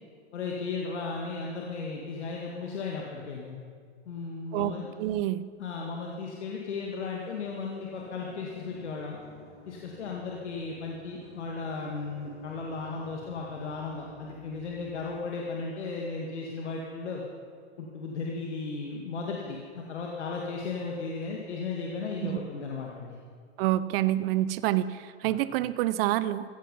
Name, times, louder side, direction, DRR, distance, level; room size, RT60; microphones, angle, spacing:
voice 1, 0.3-3.6 4.1-4.9 5.6-9.2 9.7-17.2 17.8-23.2 25.2-25.3, left 4 dB, 80° left, -1 dB, 2.0 m, -35 dB
voice 2, 4.5-5.4 22.2-22.4 23.6-26.4, right 14 dB, 55° right, 16 dB, 0.8 m, -27 dB
sound 1, 7.2-15.2, left 3 dB, 30° left, 3.1 m, -52 dB
15.5 x 15.0 x 5.5 m, 2.1 s
hypercardioid pair, 100°, 34 cm